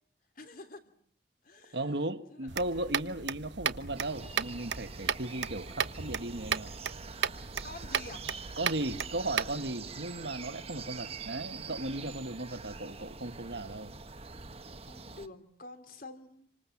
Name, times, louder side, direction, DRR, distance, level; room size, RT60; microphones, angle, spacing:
voice 1, 0.4-0.8 1.4-3.1 7.6-8.2 14.9-16.5, left 2 dB, 50° left, 3.2 m, -49 dB
voice 2, 1.7-6.7 8.6-13.9, right 1 dB, 70° right, 1.7 m, -36 dB
sound 1, 2.5-9.6, right 7 dB, 90° right, 1.1 m, -35 dB
sound 2, 3.9-15.3, right 5 dB, 35° right, 1.3 m, -45 dB
29.0 x 25.5 x 7.3 m
head